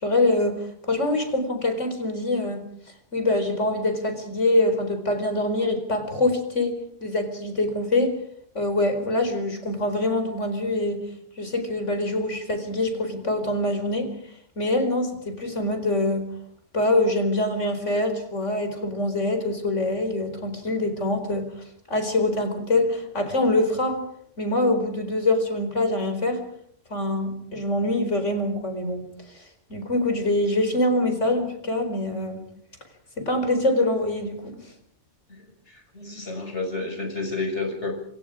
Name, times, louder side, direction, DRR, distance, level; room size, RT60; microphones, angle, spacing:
voice 1, 0.0-2.6 3.1-8.2 8.5-11.0 11.4-14.1 14.6-16.3 16.7-21.5 21.9-24.0 24.4-26.4 26.9-29.0 29.3-29.4 29.7-32.4 33.2-34.4, left 2 dB, 85° left, 7 dB, 4.9 m, -24 dB
voice 2, 35.3-37.9, left 3 dB, 70° left, 4 dB, 6.6 m, -31 dB
28.0 x 26.0 x 5.0 m, 0.66 s
omnidirectional pair, 1.2 m